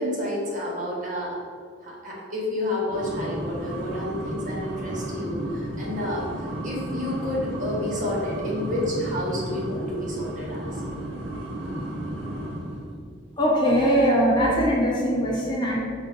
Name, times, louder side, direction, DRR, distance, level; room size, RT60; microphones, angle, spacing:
voice 1, 0.0-1.4 1.8-10.8, left 1 dB, 40° right, -5 dB, 1.7 m, -30 dB
sound 1, 2.9-13.0, right 1 dB, 70° right, 1.7 m, -33 dB
voice 2, 13.4-15.8, equal, 20° left, -5 dB, 1.4 m, -21 dB
7.0 x 4.0 x 5.2 m, 2.2 s
head